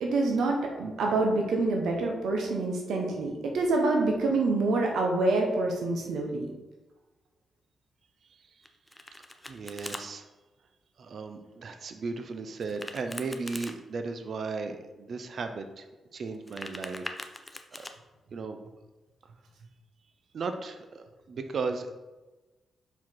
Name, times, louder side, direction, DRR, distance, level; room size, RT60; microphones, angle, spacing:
voice 1, 0.0-6.5, right 2 dB, 90° right, 1 dB, 1.0 m, -26 dB
Domestic sounds home sounds, 8.6-10.0 12.6-13.7 16.3-17.9, left 1 dB, 10° left, 0.6 m, -42 dB
voice 2, 9.5-10.3 11.0-15.8 16.1-17.1 17.7-17.9 18.3-18.6 20.3-21.9, right 4 dB, 55° right, 7 dB, 0.5 m, -36 dB
5.6 x 4.9 x 4.6 m, 1.2 s
cardioid pair, 100°, 0 cm